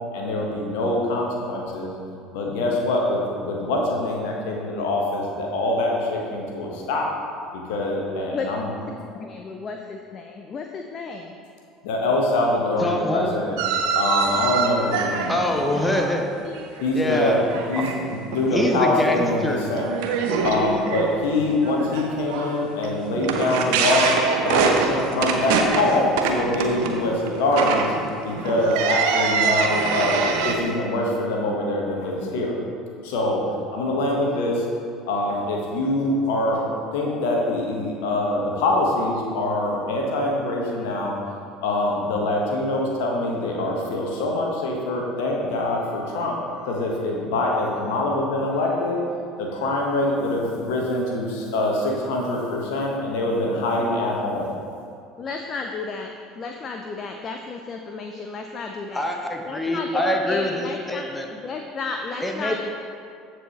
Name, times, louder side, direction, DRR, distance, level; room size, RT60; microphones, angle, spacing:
voice 1, 0.1-1.9 2.3-7.1 7.5-8.7 11.8-13.6 13.9-15.8 16.8-17.4 17.7-19.9 20.4-27.9 28.2-32.6 33.0-33.4 33.7-34.7 35.1-36.6 36.9-41.1 41.6-46.4 46.6-49.0 49.4-54.5, left 2 dB, 60° left, -1 dB, 1.3 m, -24 dB
voice 2, 8.9-11.3 16.4-16.5 55.2-59.1 59.4-62.6, left 4 dB, 35° left, 4 dB, 0.5 m, -33 dB
voice 3, 12.8-13.4 15.2-16.2 16.9-17.5 17.8-17.9 18.5-19.6 58.9-61.3 62.2-62.6, left 1 dB, 10° left, 2 dB, 0.8 m, -24 dB
sound 1, 13.6-16.9 17.2-17.9 18.3-18.7 19.1-19.2 19.7-30.5, right 5 dB, 60° right, 0.7 m, -24 dB
14.0 x 4.8 x 3.1 m, 2.4 s
figure-of-eight pair, 65°, 0 cm